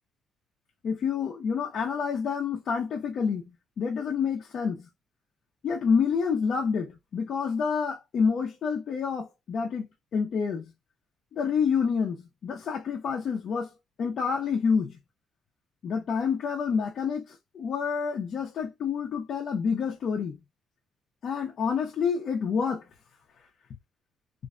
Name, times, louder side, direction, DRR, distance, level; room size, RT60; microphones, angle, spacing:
voice 1, 0.8-4.9 5.6-10.7 11.3-13.7 14.0-15.0 15.8-20.4 21.2-22.9, left 6 dB, 60° left, 0.5 m, -28 dB
2.5 x 2.1 x 2.4 m
cardioid pair, 90°, 0 cm